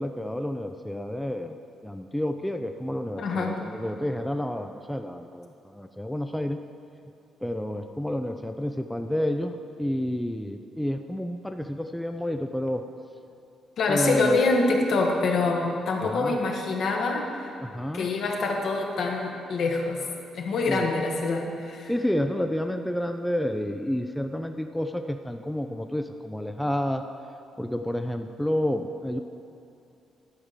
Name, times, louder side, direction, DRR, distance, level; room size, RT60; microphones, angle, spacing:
voice 1, 0.0-1.6 1.8-6.6 7.4-12.8 13.9-14.4 16.0-16.4 17.6-18.1 20.7-20.8 21.9-27.0 27.6-29.2, left 1 dB, 5° left, 6 dB, 0.4 m, -30 dB
voice 2, 3.2-3.6 13.8-17.5 17.9-20.1 20.3-21.9, left 3 dB, 65° left, 1 dB, 1.4 m, -25 dB
11.5 x 5.0 x 7.4 m, 2.7 s
cardioid pair, 90°, 0 cm